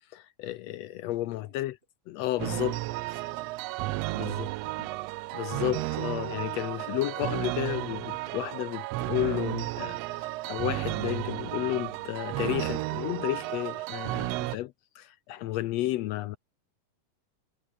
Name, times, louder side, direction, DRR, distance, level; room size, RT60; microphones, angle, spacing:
voice 1, 0.1-1.7 2.1-2.8 4.2-4.5 5.3-16.4, left 15 dB, 80° left, 1.6 m, -32 dB
voice 2, 1.0-1.7 2.2-2.5 15.4-15.6, right 1 dB, 15° right, 8.0 m, -66 dB
sound 1, 2.4-14.6, right 19 dB, 90° right, 1.4 m, -33 dB
omnidirectional pair, 3.5 m